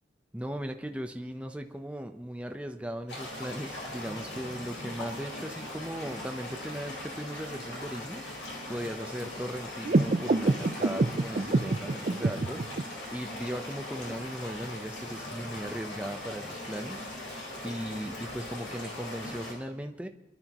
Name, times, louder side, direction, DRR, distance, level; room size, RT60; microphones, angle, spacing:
voice 1, 0.3-20.1, equal, 5° right, 5 dB, 0.8 m, -38 dB
sound 1, 3.1-19.5, left 1 dB, 65° left, 4.5 m, -40 dB
sound 2, 9.8-12.8, right 2 dB, 45° right, 0.5 m, -27 dB
26.0 x 12.0 x 3.0 m, 0.91 s
head